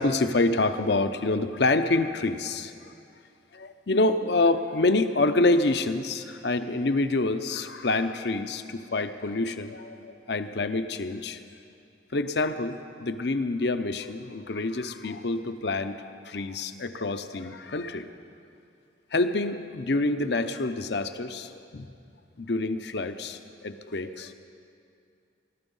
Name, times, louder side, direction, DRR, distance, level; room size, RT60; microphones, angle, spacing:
voice 1, 0.0-2.7 3.5-11.4 12.1-15.9 16.2-18.1 19.1-21.9 22.4-24.3, left 2 dB, 60° left, 10 dB, 0.7 m, -27 dB
21.0 x 12.5 x 5.5 m, 2.5 s
head